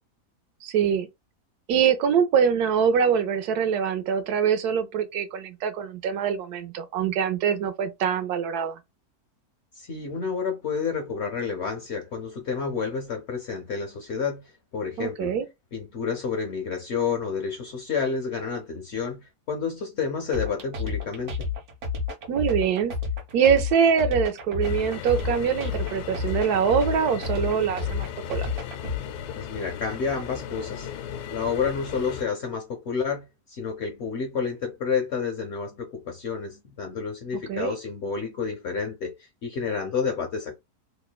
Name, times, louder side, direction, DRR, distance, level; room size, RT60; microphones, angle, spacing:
voice 1, 0.6-1.1 1.7-8.8 15.0-15.5 22.3-22.9 23.3-28.5 37.5-37.7, right 7 dB, 75° right, 1.1 m, -24 dB
voice 2, 9.7-15.4 15.7-21.5 29.4-30.9 31.3-40.6, left 5 dB, 65° left, 0.7 m, -30 dB
sound 1, 20.3-29.0, left 5 dB, 60° right, 1.0 m, -30 dB
sound 2, 24.6-32.2, left 8 dB, 90° left, 1.1 m, -37 dB
3.0 x 2.1 x 2.2 m
omnidirectional pair, 1.7 m